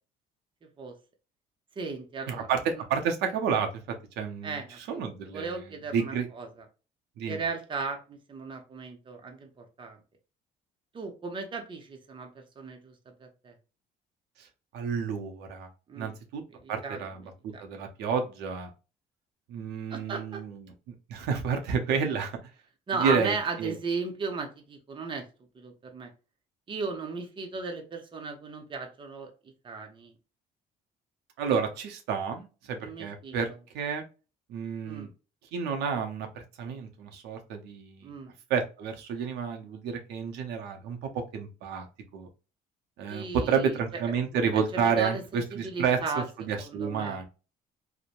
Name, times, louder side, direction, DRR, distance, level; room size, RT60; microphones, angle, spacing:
voice 1, 1.8-2.5 4.4-5.0 5.3-6.6 7.3-10.0 10.9-12.9 13.2-13.5 15.9-16.1 16.6-17.0 17.5-17.8 19.9-20.4 22.9-25.2 25.5-26.1 26.7-29.3 29.6-30.1 32.8-33.4 34.8-35.1 38.0-38.3 43.1-43.8 44.7-46.3 46.6-47.2, right 4 dB, 30° right, 4 dB, 0.7 m, -36 dB
voice 2, 2.3-3.7 4.2-6.3 7.2-7.4 14.4-14.5 14.7-15.7 16.0-16.4 16.7-17.3 17.6-18.7 19.5-20.7 21.1-22.4 23.0-23.7 31.4-33.5 33.7-34.0 34.5-35.1 35.5-38.1 38.5-41.9 42.1-42.3 43.0-46.0 46.4-47.3, right 6 dB, 85° right, 4 dB, 0.7 m, -30 dB
3.0 x 2.1 x 2.4 m, 0.32 s
cardioid pair, 110°, 17 cm